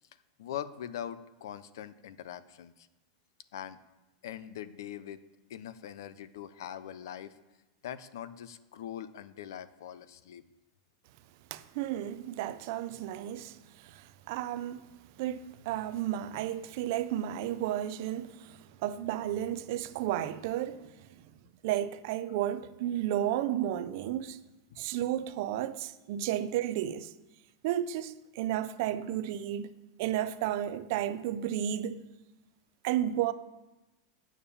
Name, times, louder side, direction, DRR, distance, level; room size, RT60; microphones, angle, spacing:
voice 1, 0.4-2.9 3.5-3.8 4.2-5.2 5.5-7.4 7.8-10.4 24.7-24.8, left 10 dB, 75° left, 0.6 m, -42 dB
voice 2, 11.5-14.8 15.2-20.9 21.6-24.4 24.8-27.1 27.6-29.7 30.0-32.0 32.8-33.3, right 11 dB, 45° right, 0.5 m, -33 dB
8.8 x 7.2 x 6.9 m
supercardioid pair, 180°, 2 cm